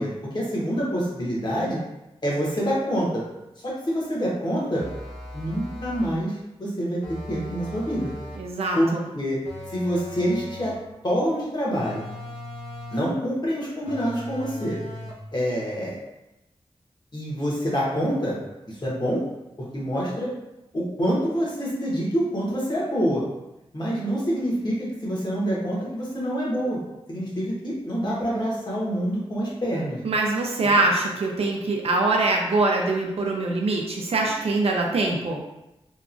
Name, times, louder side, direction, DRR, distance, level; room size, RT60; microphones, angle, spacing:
voice 1, 0.0-1.8 2.2-3.2 3.6-4.9 5.3-6.3 6.6-7.0 7.3-8.1 8.7-9.4 9.7-10.7 11.0-12.0 12.9-14.8 15.3-16.0 17.1-18.4 18.7-19.2 19.7-20.3 20.7-23.2 23.7-26.8 27.1-30.0, equal, 45° left, -6 dB, 1.0 m, -26 dB
sound 1, 4.8-6.2 7.0-8.5 9.5-10.9 11.7-13.2 13.9-15.3, left 1 dB, 90° left, 0.6 m, -38 dB
voice 2, 8.3-9.1 30.0-35.4, right 2 dB, 75° right, 0 dB, 0.4 m, -23 dB
2.9 x 2.3 x 2.5 m, 0.93 s
wide cardioid pair, 85°, 10 cm